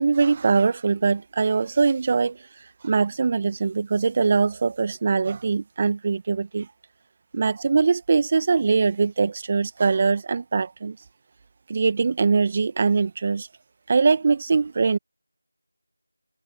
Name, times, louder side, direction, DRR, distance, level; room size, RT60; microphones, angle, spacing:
voice 1, 0.0-2.4 2.8-6.7 7.3-11.0 11.7-13.5 13.9-15.0, right 4 dB, 25° right, 1.7 m, -22 dB
figure-of-eight pair, 170°, 0 cm